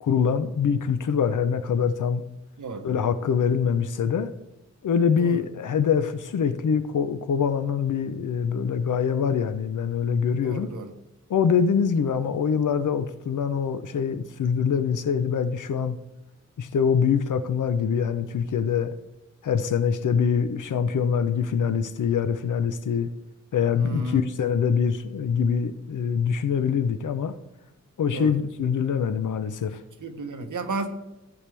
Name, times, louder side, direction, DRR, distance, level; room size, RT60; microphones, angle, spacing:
voice 1, 0.0-2.2 2.8-4.3 4.8-10.7 11.3-16.0 16.6-18.9 19.4-23.1 23.5-27.3 28.0-29.8, left 7 dB, 90° left, 10 dB, 0.7 m, -24 dB
voice 2, 10.4-10.9 23.8-24.2 28.1-28.3 30.0-30.9, right 3 dB, 80° right, 6 dB, 1.1 m, -33 dB
14.5 x 7.0 x 3.4 m, 0.96 s
wide cardioid pair, 90°, 30 cm